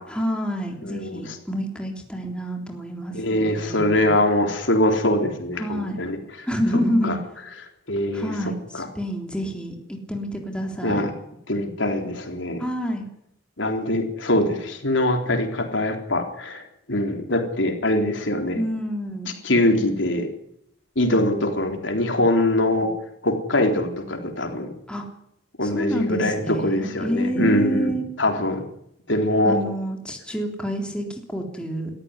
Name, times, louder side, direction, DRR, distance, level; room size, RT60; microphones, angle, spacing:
voice 1, 0.1-4.2 5.6-6.0 6.5-7.2 8.1-11.0 12.6-13.1 18.6-19.3 24.9-25.1 25.6-28.1 29.4-31.9, equal, 5° left, 1 dB, 3.5 m, -28 dB
voice 2, 0.8-1.4 3.1-6.5 7.0-7.2 7.9-8.3 8.7-8.9 10.8-11.1 11.5-12.6 13.6-18.6 19.4-20.3 21.0-22.9 23.2-24.7 25.6-28.6 29.1-29.6, left 1 dB, 75° left, 4 dB, 3.7 m, -23 dB
21.5 x 14.0 x 9.7 m, 0.76 s
head